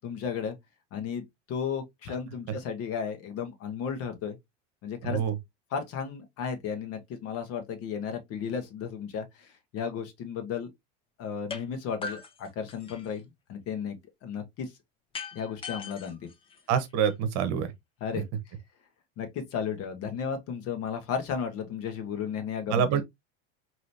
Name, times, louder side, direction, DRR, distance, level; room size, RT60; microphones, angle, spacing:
voice 1, 0.0-0.6 0.9-4.4 4.8-5.2 5.7-10.7 11.2-13.2 13.5-14.7 15.3-16.3 18.0-18.3 19.2-23.0, left 7 dB, 40° left, 1.3 m, -34 dB
voice 2, 5.0-5.3 16.7-17.7 22.7-23.0, right 8 dB, 45° right, 1.1 m, -26 dB
sound 1, 11.5-11.6 12.0-13.2 15.1-17.1, left 5 dB, 15° left, 0.6 m, -40 dB
4.9 x 3.1 x 2.7 m
supercardioid pair, 135°, 35 cm